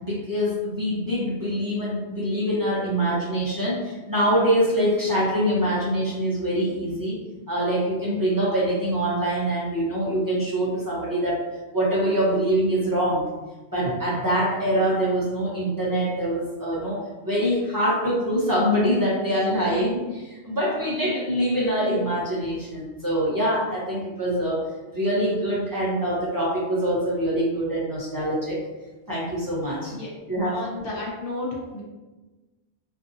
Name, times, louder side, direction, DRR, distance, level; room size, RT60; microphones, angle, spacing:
voice 1, 0.0-7.1 7.5-11.4 11.7-13.3 13.7-24.6 24.9-28.6 29.1-29.9 30.3-30.6, equal, 30° right, -8 dB, 0.4 m, -24 dB
voice 2, 30.5-31.8, left 2 dB, 55° left, -4 dB, 0.8 m, -32 dB
2.5 x 2.5 x 2.5 m, 1.2 s
omnidirectional pair, 1.3 m